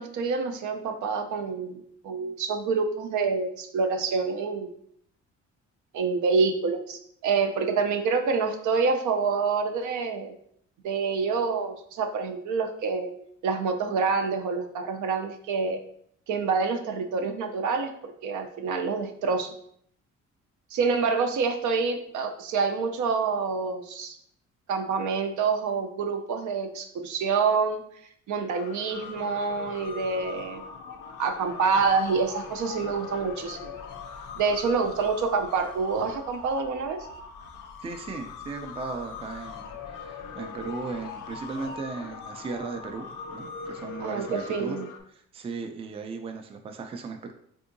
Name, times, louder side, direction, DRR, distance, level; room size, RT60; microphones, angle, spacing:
voice 1, 0.0-4.7 5.9-10.3 10.8-13.1 13.4-15.8 16.3-19.5 20.7-24.2 24.7-27.8 28.3-30.6 31.2-33.8 34.4-37.0 44.0-44.9, right 5 dB, 75° right, 5 dB, 0.5 m, -27 dB
sound 1, 28.5-45.0, left 5 dB, 90° left, 0.5 m, -41 dB
voice 2, 37.8-43.1 43.3-44.8 45.1-47.3, right 4 dB, 20° right, 5 dB, 0.3 m, -36 dB
3.5 x 2.7 x 2.6 m, 0.67 s
cardioid pair, 90°, 30 cm